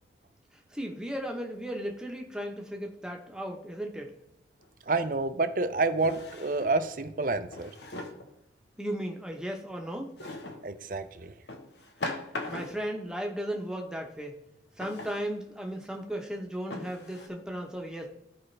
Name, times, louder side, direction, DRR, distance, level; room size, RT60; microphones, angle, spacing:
voice 1, 0.7-4.1 8.8-10.1 12.5-14.4 14.8-18.1, equal, 5° right, 1 dB, 1.0 m, -35 dB
Drawer open or close, 4.6-4.7 5.9-6.8 7.5-8.3 10.2-10.7 11.5-12.9 14.8-15.3 15.9-16.0 16.7-17.3, left 2 dB, 80° left, 1.1 m, -39 dB
voice 2, 4.9-7.7 10.6-11.3, right 3 dB, 50° right, 10 dB, 0.6 m, -28 dB
14.0 x 5.0 x 3.3 m, 0.85 s
head